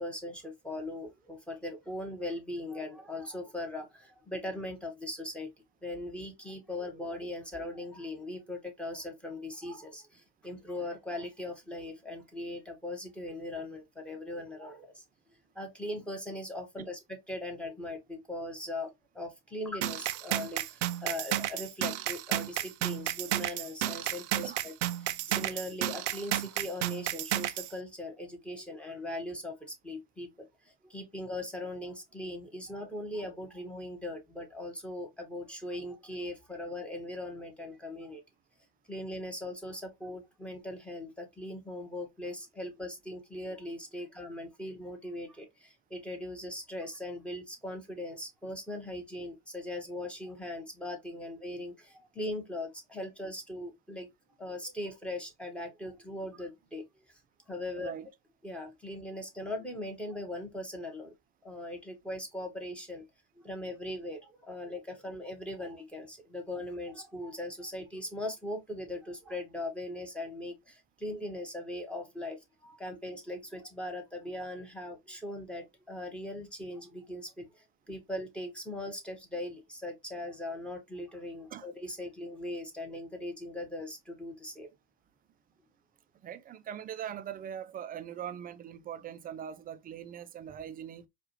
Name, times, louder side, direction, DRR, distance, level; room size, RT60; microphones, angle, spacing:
voice 1, 0.0-5.5 5.8-15.0 15.5-24.7 25.0-38.2 38.9-54.1 54.4-57.1 57.5-57.9 58.4-61.1 61.4-63.1 63.4-84.7, left 1 dB, 5° left, 1.3 m, -40 dB
sound 1, 19.8-27.7, right 14 dB, 85° right, 0.5 m, -32 dB
voice 2, 57.8-58.1 81.5-81.7 86.2-91.1, right 9 dB, 25° right, 0.5 m, -41 dB
4.7 x 2.5 x 3.0 m
supercardioid pair, 105°, 35 cm